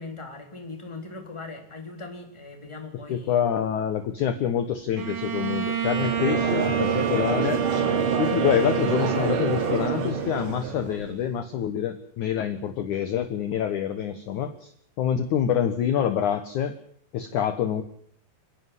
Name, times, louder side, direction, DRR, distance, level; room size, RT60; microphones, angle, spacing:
voice 1, 0.0-3.4, left 3 dB, 5° left, 2 dB, 2.9 m, -40 dB
voice 2, 3.1-7.6 8.2-14.7 15.0-16.7 17.1-17.8, left 9 dB, 70° left, 8 dB, 1.9 m, -26 dB
Bowed string instrument, 5.0-10.7, right 8 dB, 50° right, 2.2 m, -28 dB
Conversation / Crowd, 5.9-11.2, right 5 dB, 75° right, 4.8 m, -28 dB
29.0 x 11.0 x 9.8 m, 0.66 s
omnidirectional pair, 5.1 m